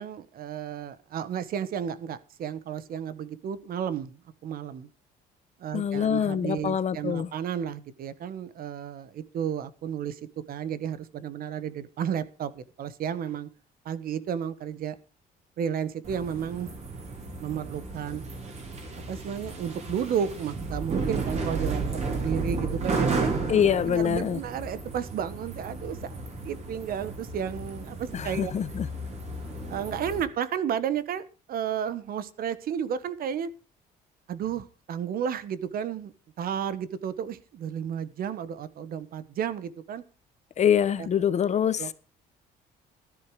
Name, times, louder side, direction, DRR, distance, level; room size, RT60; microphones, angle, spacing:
voice 1, 0.0-4.9 5.6-10.2 10.5-13.5 13.8-15.0 15.6-16.7 17.4-18.2 19.1-21.8 22.1-23.3 23.8-28.5 29.7-33.5 34.3-40.0 41.0-41.1 41.8-41.9, right 8 dB, 60° right, 16 dB, 1.3 m, -32 dB
voice 2, 5.7-7.3 23.5-24.4 28.1-28.9 40.6-41.9, left 8 dB, 45° left, 14 dB, 1.1 m, -25 dB
sound 1, 16.0-30.2, right 3 dB, 40° right, 5.0 m, -33 dB
12.5 x 11.5 x 4.9 m, 0.34 s
cardioid pair, 110°, 17 cm